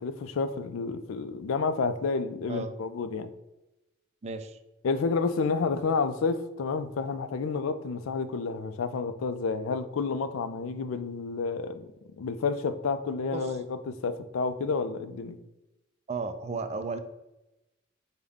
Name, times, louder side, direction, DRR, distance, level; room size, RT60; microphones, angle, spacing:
voice 1, 0.0-3.3 4.8-11.9 12.2-15.4, left 4 dB, 90° left, 10 dB, 0.4 m, -30 dB
voice 2, 4.2-4.6 13.3-13.5 16.1-17.0, right 4 dB, 35° right, 8 dB, 0.3 m, -34 dB
5.3 x 2.1 x 3.5 m, 0.96 s
head